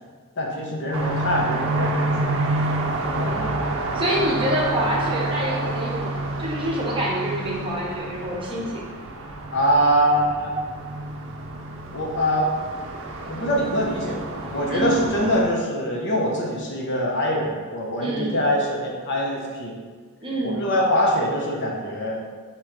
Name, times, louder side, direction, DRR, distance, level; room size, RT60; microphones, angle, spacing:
voice 1, 0.4-2.3 9.5-10.5 11.9-12.5 13.3-14.2 14.5-19.8 20.4-22.2, equal, 55° left, -1 dB, 0.8 m, -23 dB
sound 1, 0.9-15.4, right 2 dB, 60° right, 0.5 m, -28 dB
voice 2, 3.1-8.7 14.7-15.0 18.0-18.4 20.2-20.6, right 1 dB, 25° right, -4 dB, 0.8 m, -27 dB
3.7 x 2.9 x 4.5 m, 1.6 s
head